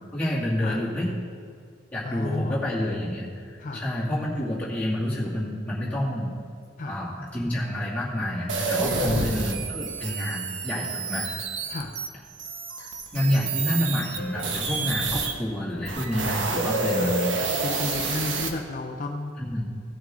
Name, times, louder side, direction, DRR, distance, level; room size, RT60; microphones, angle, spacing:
voice 1, 0.1-1.1 1.9-3.3 3.5-6.3 6.8-11.3 12.8-17.4 19.4-19.6, left 1 dB, 10° left, -8 dB, 2.3 m, -28 dB
voice 2, 2.0-2.6 3.6-3.9 6.8-7.0 8.9-9.3 11.7-12.0 14.8-14.9 16.9-19.3, left 2 dB, 45° left, 2 dB, 0.5 m, -33 dB
sound 1, 8.5-15.3 15.8-18.5, right 3 dB, 85° right, 1.0 m, -29 dB
15.5 x 6.2 x 3.7 m, 2.3 s
head